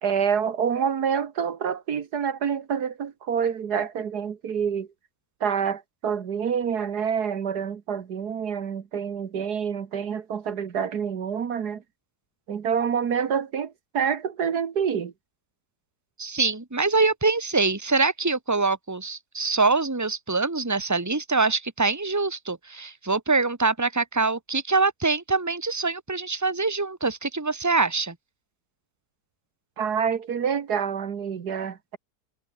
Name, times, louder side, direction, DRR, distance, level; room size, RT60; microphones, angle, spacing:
voice 1, 0.0-4.9 5.4-11.8 12.5-15.1 29.8-32.0, right 7 dB, 75° right, 1.9 m, -27 dB
voice 2, 16.2-28.2, right 3 dB, 10° right, 1.8 m, -24 dB
omnidirectional pair, 1.7 m